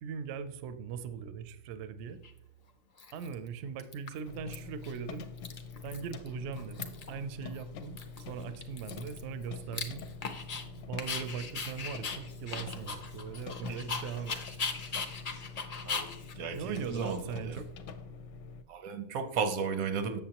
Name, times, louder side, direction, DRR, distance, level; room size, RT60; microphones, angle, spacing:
voice 1, 0.0-2.2 3.1-5.3 5.8-8.0 8.3-10.0 10.7-14.6 16.5-17.7, right 7 dB, 65° right, 11 dB, 0.8 m, -40 dB
Dog, 2.2-2.3 3.0-3.5 3.8-4.5 4.8-5.0 5.2-6.3 6.5-7.2 7.5-7.6 8.0-10.6 11.0-17.6, left 5 dB, 50° left, 0.5 m, -39 dB
sound 1, 4.3-18.6, left 5 dB, 70° left, 0.8 m, -45 dB
voice 2, 16.4-17.6 18.7-20.2, right 5 dB, 90° right, 9 dB, 1.2 m, -34 dB
7.4 x 6.9 x 2.9 m, 0.82 s
omnidirectional pair, 1.4 m